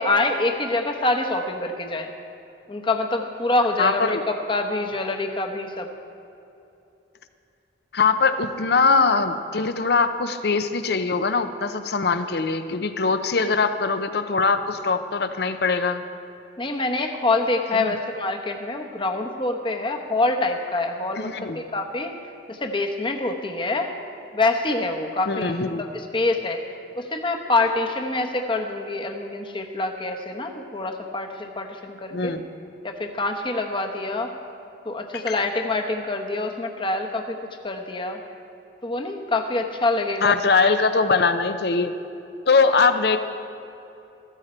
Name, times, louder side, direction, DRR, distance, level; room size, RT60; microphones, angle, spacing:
voice 1, 0.0-2.1 2.7-5.9 16.6-22.1 22.5-23.9 24.3-26.6 27.0-32.3 32.8-34.3 34.8-37.4 37.6-38.2 38.8-40.3 42.7-42.8, left 2 dB, 30° left, 4 dB, 1.0 m, -25 dB
voice 2, 3.8-4.2 7.9-16.0 17.7-17.9 21.2-21.6 25.3-25.8 32.1-32.4 35.1-35.3 40.2-41.9 42.5-43.2, left 4 dB, 60° left, 10 dB, 0.7 m, -22 dB
14.0 x 14.0 x 4.4 m, 2.8 s
head